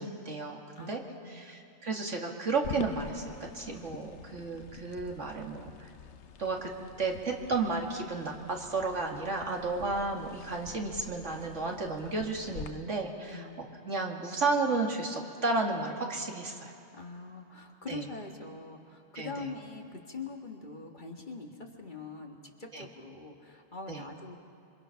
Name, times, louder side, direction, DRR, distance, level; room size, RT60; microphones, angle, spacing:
voice 1, 0.0-5.9 6.4-6.7 7.0-13.5 13.8-16.7 17.9-18.1 19.1-19.5 22.7-22.9 23.9-24.0, right 3 dB, 80° right, 1 dB, 2.4 m, -33 dB
voice 2, 0.8-1.4 13.3-13.6 16.9-24.4, left 3 dB, 40° left, 2 dB, 2.0 m, -43 dB
sound 1, 2.6-12.7, left 7 dB, 70° left, 1.1 m, -46 dB
27.0 x 24.5 x 5.8 m, 2.7 s
omnidirectional pair, 1.2 m